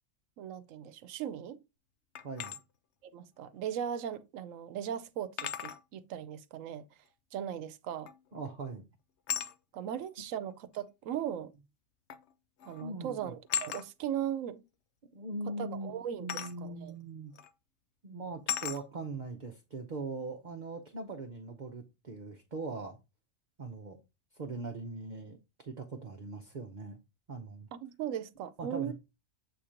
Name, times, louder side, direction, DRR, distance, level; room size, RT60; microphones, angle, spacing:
voice 1, 0.4-1.6 3.1-6.8 7.3-8.1 9.7-11.5 12.7-14.6 15.7-16.9 27.7-28.9, right 9 dB, 90° right, 1.0 m, -38 dB
sound 1, 2.1-2.6 4.1-4.2 5.4-5.8 8.1-8.4 9.3-9.5 10.7-10.8 12.1-12.3 12.6-12.9 13.5-13.9 16.3-16.6 17.4-17.5 18.5-18.8, left 9 dB, 65° left, 0.9 m, -36 dB
voice 2, 8.3-8.9 12.8-13.3 15.1-17.3 18.0-23.0 23.6-24.0 24.3-27.0 27.3-27.7 28.6-28.9, right 3 dB, 40° right, 0.8 m, -41 dB
7.8 x 2.9 x 4.9 m
omnidirectional pair, 1.3 m